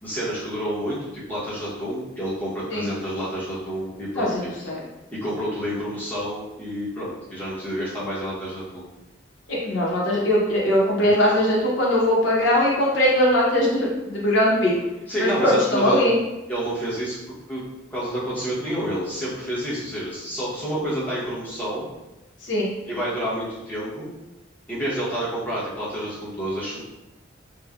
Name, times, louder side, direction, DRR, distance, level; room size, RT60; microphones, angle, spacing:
voice 1, 0.0-4.3 5.1-8.8 11.0-11.2 15.1-16.0 16.5-17.2 17.5-17.6 17.9-21.9 22.8-24.1 24.7-26.8, equal, 10° left, -9 dB, 0.8 m, -29 dB
voice 2, 4.2-4.8 9.5-14.7 15.2-16.1 22.4-22.7, left 1 dB, 75° left, -4 dB, 0.8 m, -20 dB
3.1 x 2.1 x 2.4 m, 0.99 s
head